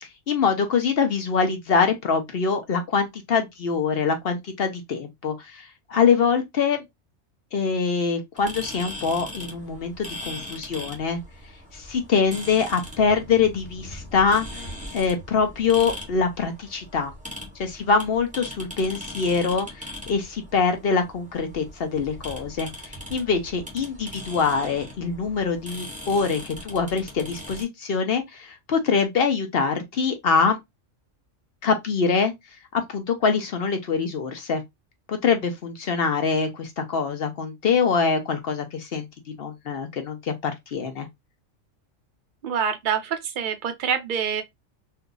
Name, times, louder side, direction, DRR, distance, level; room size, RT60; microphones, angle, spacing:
voice 1, 0.0-6.8 7.5-11.2 11.7-14.5 14.9-17.1 17.6-30.6 31.6-32.3 32.9-34.6 35.1-41.1, left 5 dB, 55° left, 0.8 m, -24 dB
sound 1, 8.4-27.6, left 1 dB, 5° right, 1.0 m, -40 dB
voice 2, 42.4-44.4, right 7 dB, 50° right, 0.7 m, -26 dB
2.7 x 2.2 x 3.8 m
omnidirectional pair, 1.3 m